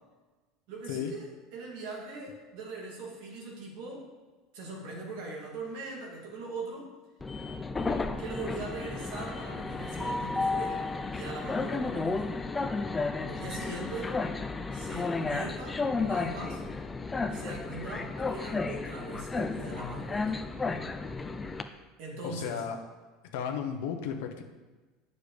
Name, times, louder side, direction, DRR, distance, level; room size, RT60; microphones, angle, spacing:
voice 1, 0.7-1.2 1.5-4.1 4.5-6.9 8.2-12.3 13.3-14.2 14.7-16.6 17.3-20.4 22.0-22.6, right 3 dB, 65° right, -2 dB, 2.3 m, -41 dB
Train, 7.2-21.6, left 3 dB, 10° left, 0.4 m, -33 dB
voice 2, 22.2-22.8 23.3-24.4, left 8 dB, 75° left, 3 dB, 0.9 m, -34 dB
10.0 x 6.7 x 3.3 m, 1.3 s
cardioid pair, 160°, 0 cm